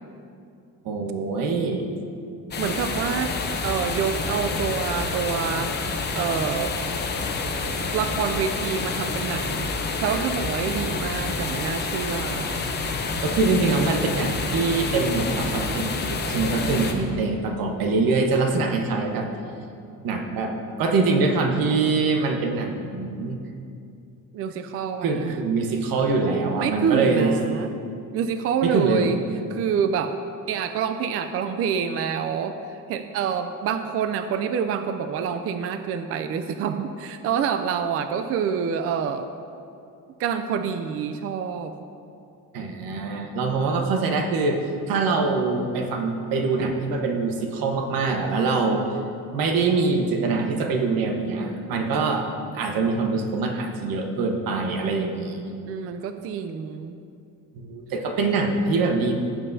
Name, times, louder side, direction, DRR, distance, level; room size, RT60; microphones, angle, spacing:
voice 1, 0.8-1.8 13.0-19.3 20.0-20.5 20.8-23.4 25.0-27.3 28.6-29.1 42.5-48.8 49.3-52.3 52.5-55.5 57.5-59.1, right 3 dB, 85° right, 3 dB, 1.2 m, -24 dB
sound 1, 2.5-16.9, left 3 dB, 30° left, 0.7 m, -28 dB
voice 2, 2.6-3.4 3.6-6.7 7.9-9.7 10.0-12.5 24.3-25.4 26.6-27.7 28.1-29.2 29.5-30.2 30.5-39.3 40.2-41.7 55.7-57.0, right 7 dB, 45° right, 8 dB, 0.4 m, -27 dB
16.5 x 7.4 x 2.7 m, 2.5 s
cardioid pair, 170°, 34 cm